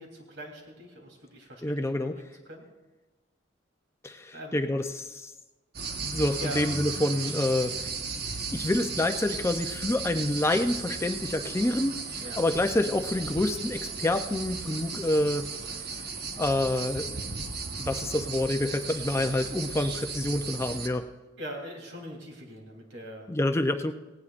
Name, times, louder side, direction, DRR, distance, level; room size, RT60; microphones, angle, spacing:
voice 1, 0.0-2.6 4.3-4.8 6.4-6.6 12.2-12.4 21.4-23.3, equal, 80° right, 1 dB, 3.3 m, -42 dB
voice 2, 1.6-2.1 4.0-5.3 6.0-7.9 8.5-12.0 12.4-15.4 16.4-17.2 17.8-21.1 23.3-23.9, left 1 dB, 15° left, 7 dB, 0.5 m, -27 dB
sound 1, 5.7-20.9, right 4 dB, 55° right, 1.2 m, -35 dB
18.0 x 17.0 x 2.5 m, 1.2 s
head